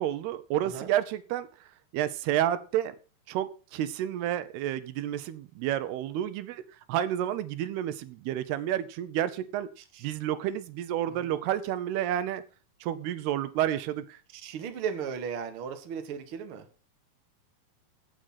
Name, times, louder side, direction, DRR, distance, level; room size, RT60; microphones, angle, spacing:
voice 1, 0.0-1.5 1.9-3.0 3.3-6.6 6.9-9.7 10.0-12.4 12.8-14.2, right 11 dB, 85° right, 2.9 m, -30 dB
voice 2, 14.3-16.6, right 7 dB, 50° right, 1.7 m, -36 dB
16.0 x 6.5 x 5.7 m
omnidirectional pair, 4.6 m